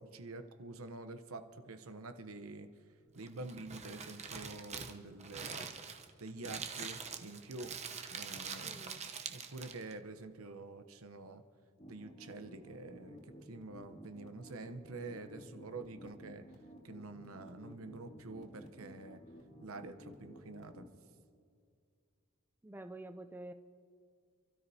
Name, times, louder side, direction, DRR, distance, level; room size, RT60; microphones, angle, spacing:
voice 1, 0.0-2.7 3.1-5.7 6.2-7.8 8.1-11.4 11.9-16.4 16.8-19.2 19.6-20.9, right 3 dB, 75° right, 9 dB, 0.9 m, -47 dB
Crumpling crinkling, 3.1-9.9, right 6 dB, 30° right, 0.8 m, -44 dB
voice 2, 8.6-9.0 22.6-23.5, right 1 dB, 10° right, 8 dB, 0.4 m, -48 dB
sound 1, 11.8-20.9, equal, 35° left, 2.4 m, -54 dB
29.0 x 13.0 x 2.8 m, 2.2 s
head